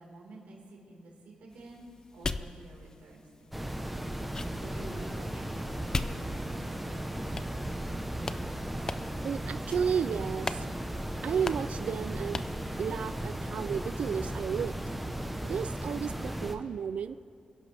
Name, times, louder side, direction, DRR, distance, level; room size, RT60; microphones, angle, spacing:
voice 1, 0.0-3.9 4.5-7.0, right 2 dB, 85° right, -3 dB, 4.5 m, -50 dB
sound 1, 1.5-6.8 7.4-8.0 8.2-8.4 8.9-9.3 9.7-10.0 10.4-10.7 10.9-11.0 11.4-11.8 12.3-12.6, left 3 dB, 25° left, 0.5 m, -39 dB
sound 2, 3.5-16.6, right 1 dB, 5° right, 0.9 m, -36 dB
voice 2, 9.2-10.7 11.2-12.5 12.8-14.8 15.4-17.2, right 7 dB, 65° right, 14 dB, 0.3 m, -32 dB
28.5 x 11.0 x 3.4 m, 2.5 s
wide cardioid pair, 135°, 2 cm